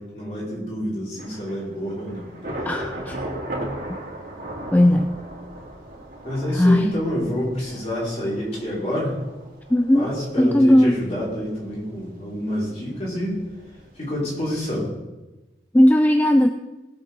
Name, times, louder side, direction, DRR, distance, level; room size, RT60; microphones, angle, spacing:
voice 1, 0.0-2.3 6.2-9.2 9.9-13.4 14.0-14.9, equal, 40° left, -7 dB, 5.3 m, -28 dB
Thunder / Rain, 1.2-14.8, right 1 dB, 50° right, 2.5 m, -38 dB
voice 2, 2.6-3.2 4.7-5.2 6.5-6.9 9.7-10.1 10.4-11.0 15.7-16.5, left 1 dB, 10° left, 6 dB, 0.3 m, -16 dB
19.5 x 7.8 x 3.9 m, 1.1 s
head